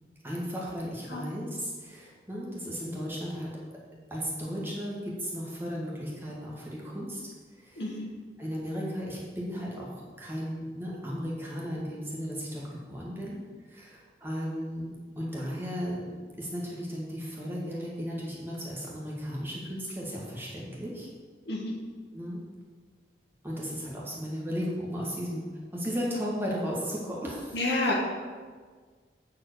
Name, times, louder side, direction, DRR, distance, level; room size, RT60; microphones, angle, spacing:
voice 1, 0.2-3.5 4.1-7.2 7.5-8.0 8.4-9.9 10.2-13.4 13.7-21.1 22.1-22.4 23.4-25.4 25.7-27.6, equal, 15° right, -5 dB, 1.9 m, -35 dB
voice 2, 7.8-8.1 21.4-21.7 27.5-28.0, left 2 dB, 80° left, -1 dB, 1.6 m, -29 dB
8.6 x 4.7 x 6.3 m, 1.5 s
head